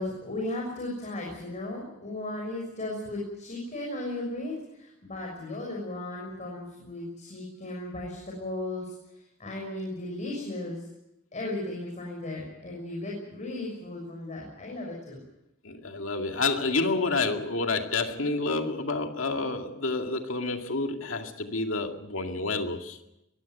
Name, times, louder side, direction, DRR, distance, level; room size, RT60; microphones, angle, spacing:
voice 1, 0.0-10.9 11.3-15.2, left 2 dB, 35° left, 6.4 m, -36 dB
voice 2, 15.6-23.0, left 3 dB, 75° left, 2.3 m, -29 dB
23.0 x 16.0 x 9.3 m
head